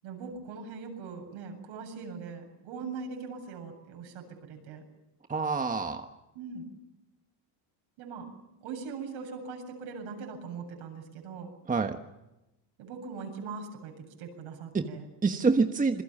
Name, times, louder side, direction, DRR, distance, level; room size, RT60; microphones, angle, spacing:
voice 1, 0.0-4.8 6.3-6.7 8.0-8.3 8.6-11.5 12.8-15.0, right 5 dB, 70° right, 4 dB, 7.9 m, -41 dB
voice 2, 5.3-6.1 11.7-12.0 14.7-14.9 15.2-16.0, right 4 dB, 15° right, 6 dB, 1.3 m, -26 dB
27.5 x 21.5 x 7.3 m, 0.94 s
cardioid pair, 135°, 49 cm